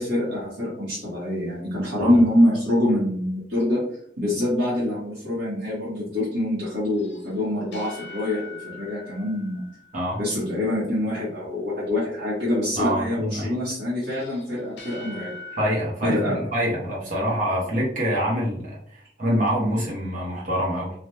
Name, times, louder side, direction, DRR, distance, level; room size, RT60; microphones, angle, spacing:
voice 1, 0.0-3.8 4.2-9.6 10.2-15.3 16.0-16.4, left 1 dB, 70° right, -10 dB, 1.3 m, -25 dB
sound 1, 7.0-10.5 14.0-15.8, left 3 dB, 65° left, 0.8 m, -42 dB
voice 2, 12.8-13.5 15.5-16.2 16.5-18.8 19.2-20.9, equal, 40° right, -5 dB, 1.1 m, -25 dB
3.3 x 2.5 x 2.7 m, 0.66 s
head